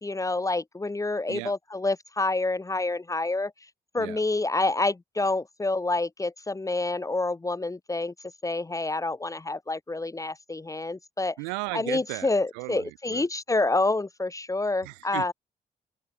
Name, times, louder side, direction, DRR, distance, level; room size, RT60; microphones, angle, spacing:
voice 1, 0.0-3.5 3.9-8.1 8.4-11.4 11.7-15.3, left 2 dB, 15° left, 0.6 m, -28 dB
voice 2, 11.4-13.3 14.8-15.3, right 40 dB or more, 85° right, 1.0 m, -36 dB
open air
hypercardioid pair, 40°, 19 cm